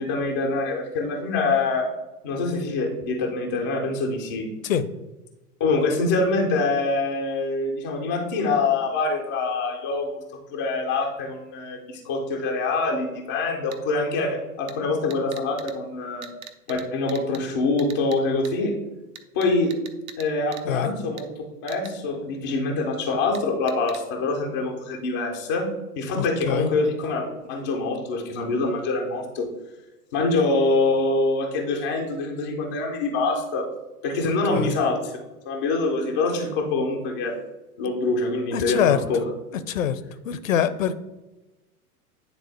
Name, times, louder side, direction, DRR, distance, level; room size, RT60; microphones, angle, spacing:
voice 1, 0.0-1.9 2.2-4.5 5.6-10.2 10.5-16.3 16.7-18.7 19.3-19.7 20.2-21.3 21.6-25.7 26.0-29.5 30.1-33.7 34.0-35.1 35.5-37.3 37.8-39.2, left 3 dB, 15° left, 0 dB, 0.3 m, -25 dB
sound 1, 13.7-13.8 14.7-14.8 15.1-15.7 16.2-16.8 17.1-17.4 17.8-18.2 18.4-18.5 19.1-20.2 20.5-20.6 21.2-21.3 21.7-21.9 23.3-23.4 23.7-24.0, right 8 dB, 60° right, 0.8 m, -40 dB
voice 2, 26.2-26.7 34.6-34.7 38.5-39.0 39.7-40.0 40.3-40.9, left 9 dB, 60° left, 13 dB, 0.6 m, -24 dB
9.6 x 3.6 x 3.3 m, 1.1 s
figure-of-eight pair, 95°, 47 cm